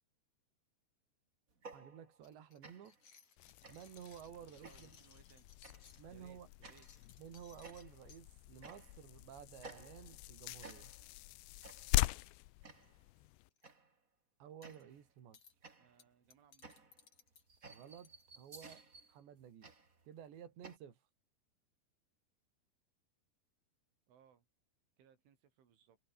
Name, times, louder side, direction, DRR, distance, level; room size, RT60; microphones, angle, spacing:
sound 1, 1.5-2.3 2.6-3.0 3.6-4.1 4.6-5.1 5.6-5.9 6.6-7.0 7.6-8.1 8.6-9.1 9.6-10.3 10.6-11.2 11.6-12.0 12.6-13.0 13.6-14.0 14.6-15.1 15.6-20.8, right 3 dB, 20° right, 2.7 m, -57 dB
voice 1, 1.7-3.0 3.7-5.0 6.0-6.5 7.2-10.9 14.4-15.4 17.7-18.8 19.1-19.7 20.0-21.0, right 9 dB, 70° right, 5.4 m, -53 dB
sound 2, 2.2-6.0 6.5-8.2 8.7-9.0 9.2-9.4 9.7-9.8 9.9-11.3 12.1-12.4 12.7-12.9 13.3-13.7 14.6-14.8 15.3-15.5 16.0-18.2, left 6 dB, 35° left, 3.1 m, -64 dB
sound 3, 3.4-13.5, left 20 dB, 80° left, 2.9 m, -42 dB
voice 2, 4.3-5.5 6.1-6.9 15.8-16.8 24.1-24.5 25.0-26.0, right 8 dB, 85° right, 6.1 m, -67 dB
omnidirectional pair, 5.4 m